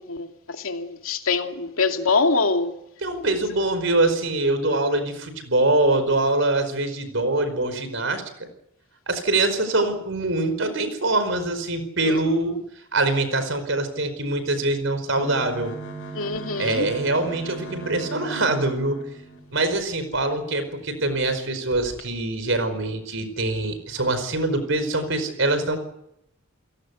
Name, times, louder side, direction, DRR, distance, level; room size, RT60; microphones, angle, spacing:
voice 1, 0.0-2.8 12.1-12.2 16.1-16.9, left 4 dB, 75° left, 2.5 m, -24 dB
voice 2, 3.0-8.5 9.1-12.6 12.9-15.7 16.6-19.0 19.5-25.8, right 2 dB, 60° right, 4.9 m, -24 dB
sound 1, 15.1-20.2 20.7-20.8 21.1-21.3 21.7-22.0, right 3 dB, 60° left, 7.7 m, -38 dB
30.0 x 17.5 x 8.3 m
head